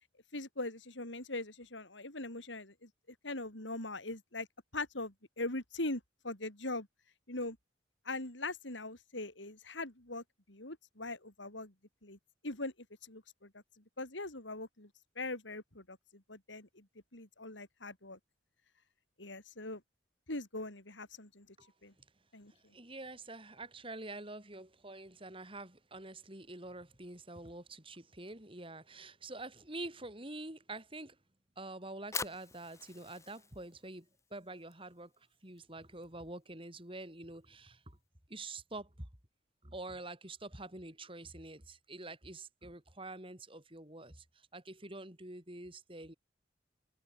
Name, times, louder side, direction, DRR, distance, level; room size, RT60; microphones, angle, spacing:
voice 1, 0.3-2.9 3.2-4.5 4.7-6.9 7.3-7.6 8.1-11.7 12.0-12.2 12.4-12.7 13.0-13.6 14.0-14.9 15.2-16.9 17.1-18.2 19.2-19.8 20.3-21.5 21.8-21.9 22.3-22.5, left 2 dB, 85° left, 5.3 m, -41 dB
voice 2, 22.7-31.2 31.6-38.0 38.3-39.1 39.6-46.1, right 2 dB, 30° right, 5.3 m, -47 dB
Fire, 31.8-38.0, left 4 dB, 15° left, 3.5 m, -47 dB
open air
head